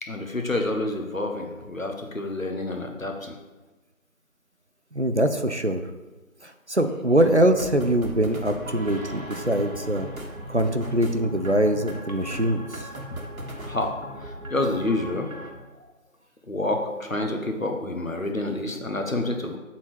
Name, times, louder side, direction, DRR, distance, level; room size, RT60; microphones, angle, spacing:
voice 1, 0.0-3.4 13.1-13.2 13.6-15.3 15.7-15.9 16.5-19.6, left 2 dB, 65° left, 3 dB, 1.3 m, -28 dB
voice 2, 4.9-5.8 6.4-10.1 10.5-12.8, right 1 dB, 55° right, 8 dB, 0.5 m, -23 dB
sound 1, 7.2-15.5, equal, 75° right, 1.4 m, -38 dB
7.3 x 4.2 x 6.2 m, 1.2 s
figure-of-eight pair, 180°, 42 cm